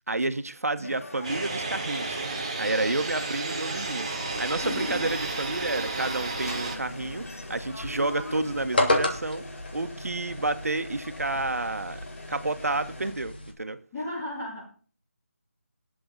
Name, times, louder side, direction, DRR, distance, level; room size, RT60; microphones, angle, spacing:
voice 1, 0.1-9.4 9.7-12.0 12.3-13.8, right 2 dB, 85° right, 1.4 m, -30 dB
sound 1, 0.8-13.1, left 2 dB, 85° left, 4.9 m, -43 dB
sound 2, 1.2-6.8, right 3 dB, 25° right, 1.8 m, -32 dB
sound 3, 4.3-13.5, left 2 dB, 40° left, 2.8 m, -34 dB
voice 2, 4.6-5.1 13.9-14.7, left 1 dB, 10° left, 3.2 m, -34 dB
19.0 x 7.8 x 4.0 m
figure-of-eight pair, 180°, 8 cm